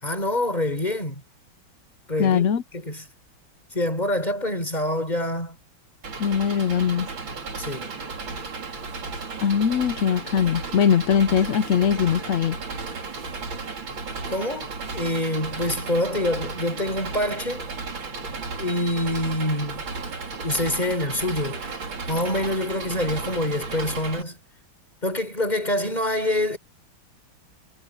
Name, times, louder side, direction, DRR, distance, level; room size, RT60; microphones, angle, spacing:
voice 1, 0.0-1.2 2.1-2.4 2.7-3.1 3.7-5.6 7.6-8.0 14.3-17.7 18.6-20.0 20.4-21.6 22.1-24.4 25.0-26.6, left 1 dB, 20° left, 4.7 m, -26 dB
voice 2, 2.2-2.6 6.2-7.1 9.4-12.6, left 8 dB, 65° left, 0.7 m, -21 dB
Engine, 6.0-24.2, right 4 dB, 75° right, 3.8 m, -34 dB
omnidirectional pair, 2.1 m